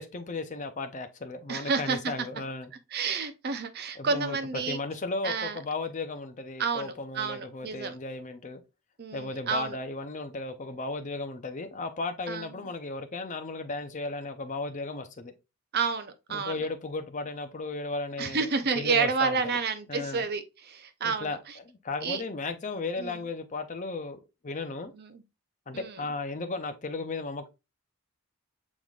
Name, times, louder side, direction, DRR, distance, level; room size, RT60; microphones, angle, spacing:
voice 1, 0.0-2.7 4.0-8.6 9.1-15.3 16.3-18.5 18.7-19.6 19.9-20.3 21.0-21.4 21.6-24.9 25.7-27.5, left 3 dB, 35° left, 0.6 m, -35 dB
voice 2, 1.5-2.1 2.9-4.8 5.2-5.6 6.6-8.0 9.0-9.8 12.3-12.7 15.7-16.6 18.2-21.4 22.0-22.2 23.0-23.2 24.9-25.2 25.7-26.0, right 5 dB, 45° right, 0.6 m, -30 dB
6.2 x 3.6 x 2.4 m
head